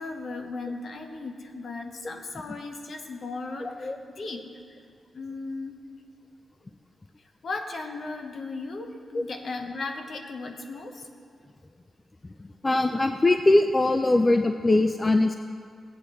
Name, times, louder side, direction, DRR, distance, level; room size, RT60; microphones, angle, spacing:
voice 1, 0.0-4.5 5.1-5.8 7.4-11.1, left 3 dB, 50° left, 4 dB, 0.9 m, -36 dB
voice 2, 3.6-4.0 9.1-9.2 12.6-15.3, left 2 dB, 20° left, 6 dB, 0.3 m, -21 dB
17.0 x 8.3 x 3.1 m, 2.2 s
wide cardioid pair, 130°, 0 cm